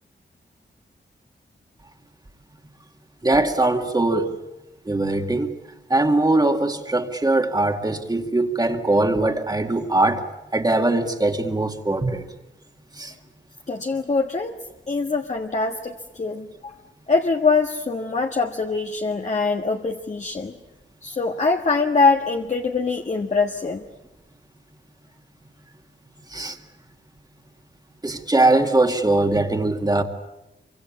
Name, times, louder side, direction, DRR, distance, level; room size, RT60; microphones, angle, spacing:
voice 1, 3.2-4.4 4.9-5.5 5.9-10.2 10.5-12.3 12.9-13.1 26.3-26.6 28.0-30.0, right 2 dB, 20° right, 5 dB, 2.1 m, -21 dB
voice 2, 13.7-14.6 14.9-16.7 17.1-20.5 21.0-23.8, left 4 dB, 40° left, 3 dB, 1.5 m, -23 dB
27.0 x 24.5 x 8.6 m, 0.95 s
wide cardioid pair, 120°, 19 cm